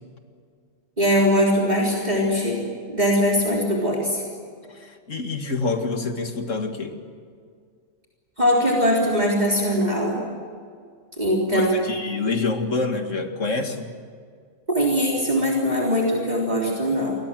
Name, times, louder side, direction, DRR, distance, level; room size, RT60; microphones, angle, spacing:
voice 1, 1.0-2.6 2.9-4.2 8.4-10.2 11.2-11.7 14.7-17.2, equal, 35° right, -3 dB, 3.8 m, -21 dB
voice 2, 4.7-6.9 11.5-13.9, left 3 dB, 75° left, 5 dB, 2.5 m, -27 dB
28.5 x 23.5 x 7.7 m, 2.1 s
omnidirectional pair, 1.3 m